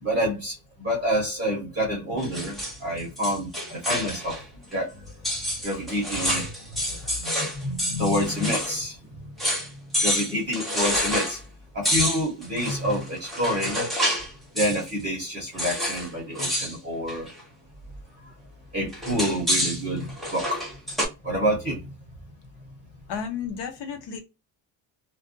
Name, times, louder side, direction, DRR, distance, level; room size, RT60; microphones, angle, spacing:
voice 1, 0.0-5.1 5.6-6.4 6.8-9.0 10.0-11.4 11.7-13.8 14.5-17.3 18.7-20.7 21.2-21.9, equal, 20° right, 0.9 m, -28 dB
sound 1, 2.2-4.4 4.7-4.8 5.2-8.8 9.0-9.1 9.4-9.7 9.9-11.4 11.8-14.3 14.6-14.9 15.6-16.1 16.3-16.7 17.1-17.4 18.9-21.1, equal, ahead, 0.6 m, -28 dB
voice 2, 23.1-24.2, left 7 dB, 60° left, 0.8 m, -33 dB
2.5 x 2.2 x 2.4 m
cardioid pair, 165°, 46 cm